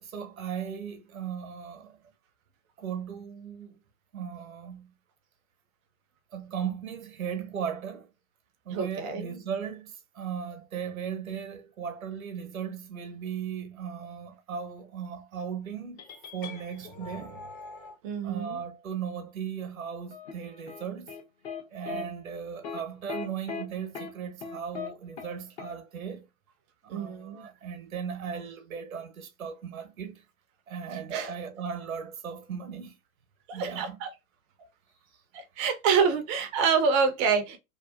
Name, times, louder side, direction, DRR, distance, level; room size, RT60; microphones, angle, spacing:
voice 1, 0.0-1.9 2.8-3.8 4.1-4.9 6.3-8.1 8.7-16.0 16.3-17.5 18.2-21.1 21.7-26.2 26.8-30.2 30.7-32.9 33.5-34.0, right 7 dB, 85° right, 0.7 m, -37 dB
voice 2, 8.7-9.4 18.0-18.6 21.9-22.1 26.9-27.5 30.9-31.3 33.5-34.1 35.3-37.6, right 6 dB, 25° right, 0.4 m, -27 dB
sound 1, 16.0-18.0, left 4 dB, 25° left, 0.7 m, -44 dB
sound 2, 20.1-21.6 21.9-22.0 22.6-22.8 23.1-23.6 23.9-24.1 24.4-24.9 25.2-25.3 25.6-25.7, left 6 dB, 50° left, 1.0 m, -37 dB
2.7 x 2.3 x 2.3 m
hypercardioid pair, 115°, 40 cm